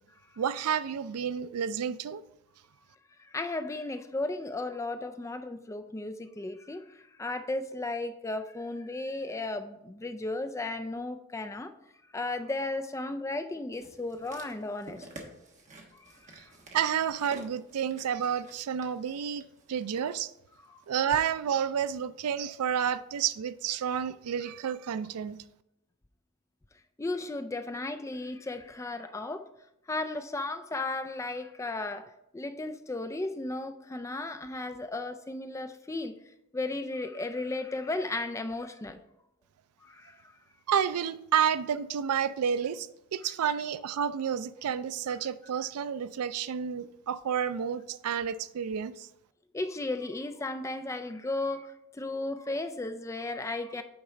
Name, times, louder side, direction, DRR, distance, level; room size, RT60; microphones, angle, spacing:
voice 1, 0.4-2.2 16.4-16.5 16.7-19.4 19.7-20.3 20.9-25.4 40.7-49.1, right 8 dB, 90° right, 0.4 m, -30 dB
voice 2, 3.2-11.7 12.1-15.1 15.9-16.5 20.7-20.8 27.0-29.5 29.9-36.1 36.5-39.0 39.8-40.3 49.5-53.8, left 2 dB, 15° left, 0.3 m, -35 dB
sound 1, 13.7-20.1 20.8-20.9, right 2 dB, 35° right, 1.1 m, -50 dB
8.7 x 4.0 x 4.8 m
head